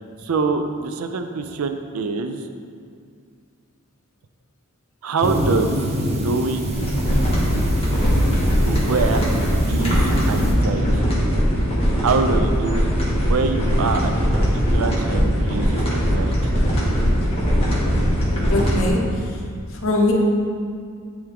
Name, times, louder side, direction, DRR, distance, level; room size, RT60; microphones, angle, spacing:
voice 1, 0.2-2.4 5.0-5.8 6.1-6.8 8.7-11.1 12.0-12.9 13.3-16.4, right 4 dB, 75° right, 7 dB, 0.5 m, -25 dB
Denver Sculpture Bronco Buster, 5.2-10.5, equal, 30° right, 0.8 m, -27 dB
sound 1, 6.7-18.9, equal, 25° left, 1.6 m, -20 dB
voice 2, 18.5-19.4 19.7-20.1, left 2 dB, 65° left, -2 dB, 1.0 m, -22 dB
10.5 x 3.5 x 3.5 m, 2.2 s
head